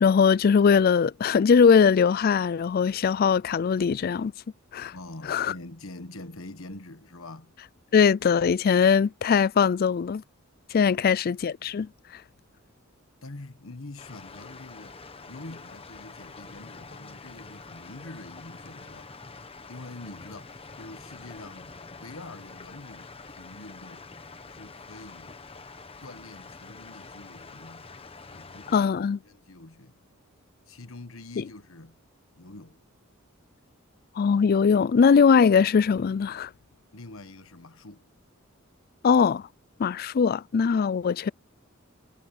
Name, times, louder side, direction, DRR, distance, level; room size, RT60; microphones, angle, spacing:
voice 1, 0.0-4.3 4.7-4.9 5.3-5.5 7.9-10.2 10.7-11.9 28.7-29.2 31.4-31.5 34.2-36.5 39.0-39.4 39.8-41.3, left 6 dB, 45° left, 0.3 m, -21 dB
voice 2, 4.9-7.5 10.9-11.2 13.2-14.9 15.3-19.1 19.7-24.1 24.5-25.4 26.0-27.9 28.3-28.9 29.2-30.0 30.7-32.0 32.4-32.8 36.9-38.1, left 2 dB, 70° left, 1.4 m, -45 dB
sound 1, 14.0-28.9, left 4 dB, 25° left, 1.1 m, -46 dB
head